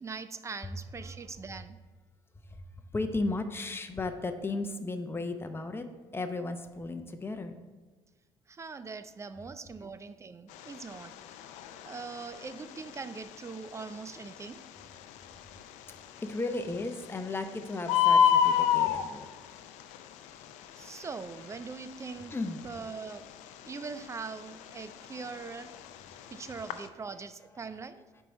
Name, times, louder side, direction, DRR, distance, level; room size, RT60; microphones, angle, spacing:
voice 1, 0.0-1.8 8.5-11.1 11.5-14.6 20.8-22.4 22.6-25.7 26.3-28.1, right 4 dB, 25° right, 12 dB, 0.4 m, -42 dB
voice 2, 2.9-5.8 6.1-7.6 16.2-19.3 22.3-22.6, left 2 dB, 20° left, 7 dB, 0.7 m, -34 dB
Bird, 10.5-26.9, left 8 dB, 85° left, 0.4 m, -31 dB
4.7 x 4.5 x 5.2 m, 1.3 s
supercardioid pair, 80°, 12 cm